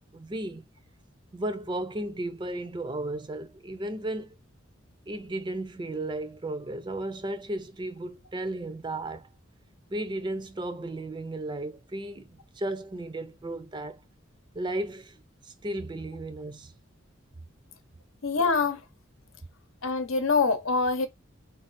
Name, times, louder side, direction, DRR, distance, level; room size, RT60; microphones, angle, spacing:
voice 1, 0.1-0.6 1.3-4.3 5.1-9.3 9.9-14.0 14.5-15.2 15.4-16.7, right 1 dB, 25° right, 0.4 m, -34 dB
voice 2, 18.2-18.8 19.8-21.1, left 4 dB, 90° left, 0.8 m, -24 dB
3.9 x 2.6 x 4.0 m
head